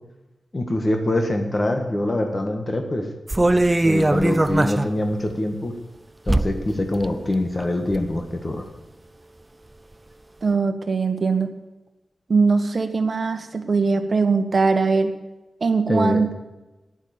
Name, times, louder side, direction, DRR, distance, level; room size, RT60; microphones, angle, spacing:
voice 1, 0.5-3.1 3.8-5.7 6.3-8.7 15.9-16.2, left 1 dB, 30° left, 4 dB, 1.5 m, -24 dB
sound 1, 3.3-4.9 5.3-5.4 6.3-6.7 7.0-7.1 7.6-8.1 8.6-8.7, right 2 dB, 20° right, 0.5 m, -20 dB
voice 2, 10.4-11.5 12.3-15.1 15.6-16.3, right 4 dB, 45° right, 8 dB, 1.3 m, -21 dB
11.5 x 10.0 x 6.7 m, 1.1 s
wide cardioid pair, 145°, 0 cm